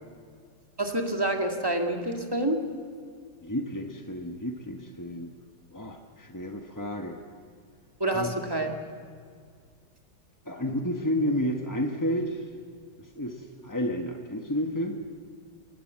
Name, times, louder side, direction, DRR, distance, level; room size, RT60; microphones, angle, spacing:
voice 1, 0.8-2.6 8.0-8.7, right 1 dB, 15° right, 3 dB, 1.9 m, -27 dB
voice 2, 3.4-5.3 5.7-7.2 8.1-8.3 10.4-12.5 13.0-15.0, equal, 15° left, 3 dB, 0.9 m, -31 dB
28.5 x 18.0 x 7.5 m, 2.1 s
omnidirectional pair, 2.0 m